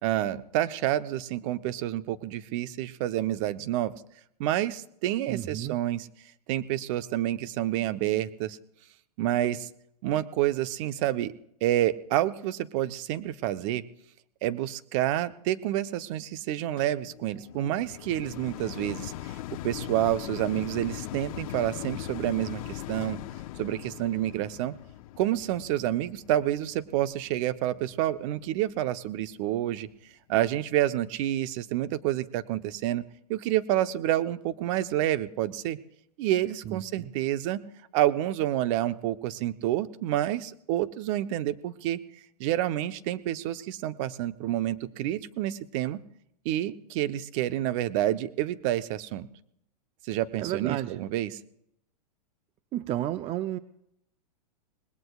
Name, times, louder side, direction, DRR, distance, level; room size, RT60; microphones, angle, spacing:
voice 1, 0.0-3.9 4.4-6.1 6.5-8.6 9.2-9.7 10.0-11.3 11.6-13.8 14.4-19.4 19.6-23.2 23.6-24.7 25.2-29.9 30.3-33.0 33.3-35.8 36.2-37.6 37.9-42.0 42.4-46.0 46.4-49.3 50.1-51.4, right 13 dB, 50° right, 11 dB, 0.9 m, -28 dB
voice 2, 5.3-5.8 36.7-37.1 50.4-50.9 52.7-53.6, right 13 dB, 30° right, 12 dB, 0.6 m, -32 dB
sound 1, 16.8-28.0 28.6-28.7, left 14 dB, 55° left, 0.7 m, -40 dB
26.0 x 20.0 x 2.4 m, 0.76 s
hypercardioid pair, 115°, 21 cm